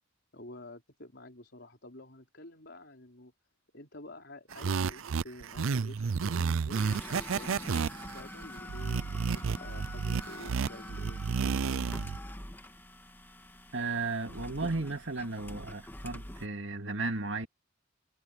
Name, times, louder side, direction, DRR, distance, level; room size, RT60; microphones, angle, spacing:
voice 1, 0.3-3.3 3.7-6.8 7.2-11.4, left 1 dB, 55° left, 4.7 m, -49 dB
sound 1, 4.5-12.2, right 5 dB, 85° right, 0.5 m, -31 dB
sound 2, 6.8-16.5, left 1 dB, 10° left, 2.0 m, -45 dB
voice 2, 13.7-17.5, right 3 dB, 65° right, 2.4 m, -34 dB
head